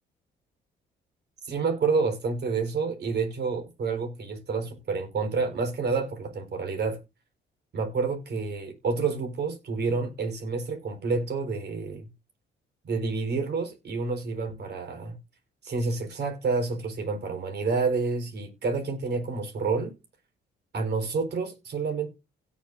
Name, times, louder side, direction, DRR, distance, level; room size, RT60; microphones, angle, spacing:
voice 1, 1.4-7.0 7.7-12.1 12.8-15.2 15.6-19.9 20.7-22.1, right 4 dB, 60° right, 4.2 m, -29 dB
17.0 x 7.2 x 2.6 m
cardioid pair, 90°, 20 cm